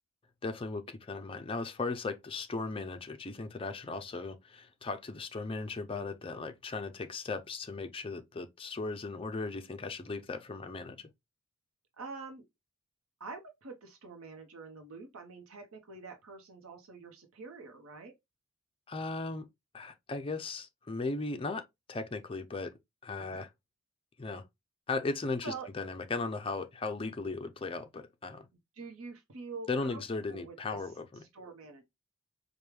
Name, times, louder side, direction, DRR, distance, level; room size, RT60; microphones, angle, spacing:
voice 1, 0.4-11.1 18.9-19.5 19.7-22.7 23.0-23.5 24.2-24.4 24.9-28.5 29.7-31.2, left 3 dB, 25° left, 0.5 m, -37 dB
voice 2, 12.0-12.4 13.2-18.1 23.3-23.5 25.4-25.7 28.8-30.0 30.3-30.8 31.3-31.8, right 4 dB, 80° right, 0.8 m, -46 dB
5.0 x 2.2 x 3.1 m
head